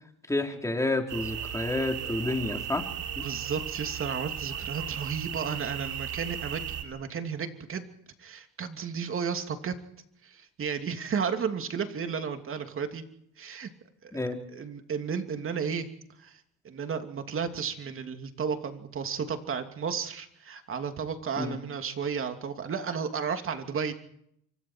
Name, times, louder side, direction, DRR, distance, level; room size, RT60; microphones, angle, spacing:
voice 1, 0.3-2.9 3.2-3.3 14.1-14.4 21.4-21.6, left 2 dB, 10° left, 2 dB, 4.1 m, -29 dB
sound 1, 1.1-6.8, right 9 dB, 85° right, 3.7 m, -36 dB
voice 2, 3.2-7.8 8.2-9.7 10.2-13.0 13.4-13.7 14.0-14.2 14.5-15.9 16.2-16.3 16.6-23.9, right 6 dB, 45° right, 6 dB, 2.8 m, -33 dB
28.0 x 24.5 x 4.7 m, 0.73 s
cardioid pair, 105°, 31 cm